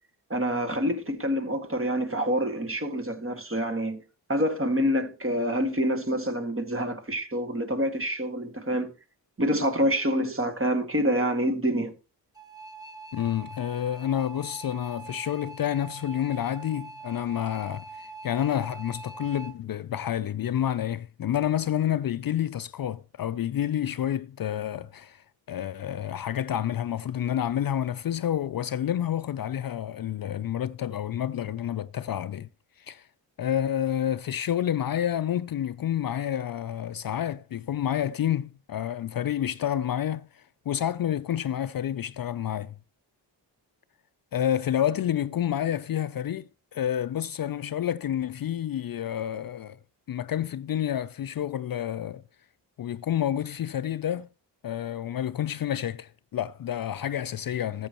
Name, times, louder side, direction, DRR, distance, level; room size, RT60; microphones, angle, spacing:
voice 1, 0.3-4.0 4.3-8.9 9.4-11.9, equal, 30° right, 1.9 m, -27 dB
sound 1, 12.3-19.5, right 4 dB, 10° right, 1.4 m, -43 dB
voice 2, 13.1-32.5 32.8-33.1 33.4-42.7 44.3-49.8 50.1-52.2 52.8-54.3 54.6-57.9, left 10 dB, 50° left, 0.5 m, -29 dB
13.5 x 7.9 x 3.0 m
cardioid pair, 50°, 45 cm